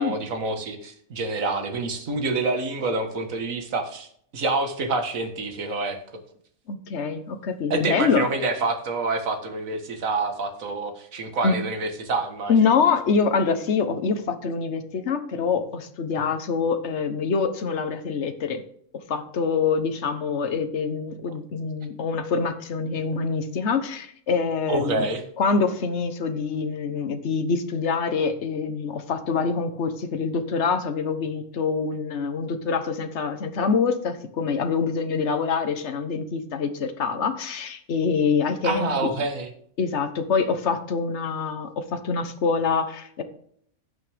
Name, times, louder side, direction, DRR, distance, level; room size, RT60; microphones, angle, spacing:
voice 1, 0.0-6.0 7.7-12.5 24.7-25.2 38.6-39.5, right 3 dB, 65° right, 6 dB, 1.8 m, -27 dB
voice 2, 6.7-8.3 11.4-11.6 12.5-18.6 19.1-25.1 25.4-38.9 39.8-43.2, left 5 dB, 55° left, 8 dB, 1.4 m, -25 dB
16.0 x 6.1 x 3.5 m, 0.63 s
omnidirectional pair, 1.5 m